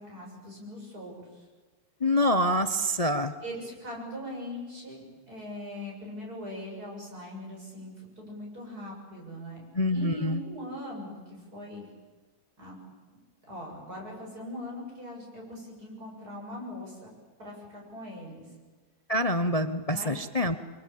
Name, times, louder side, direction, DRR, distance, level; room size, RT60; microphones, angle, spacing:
voice 1, 0.0-1.4 3.4-9.6 9.9-11.9 12.6-12.8 13.5-17.1 17.4-18.5 19.9-20.2, left 1 dB, 50° right, -1 dB, 8.2 m, -41 dB
voice 2, 2.0-3.3 9.7-10.4 19.1-20.5, left 1 dB, 40° left, 10 dB, 0.5 m, -26 dB
26.5 x 24.0 x 8.7 m, 1.4 s
omnidirectional pair, 2.1 m